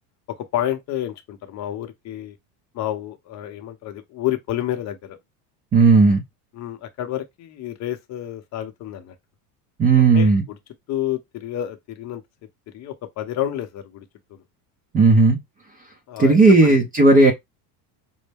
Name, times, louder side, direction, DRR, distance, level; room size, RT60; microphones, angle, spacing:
voice 1, 0.4-2.4 2.7-5.2 6.5-9.1 10.1-10.3 10.9-12.2 12.7-14.0 16.1-16.8, left 12 dB, 35° left, 0.7 m, -29 dB
voice 2, 5.7-6.2 9.8-10.4 14.9-15.4 16.2-17.3, right 3 dB, 20° right, 0.5 m, -14 dB
5.3 x 2.1 x 3.4 m
supercardioid pair, 140°, 47 cm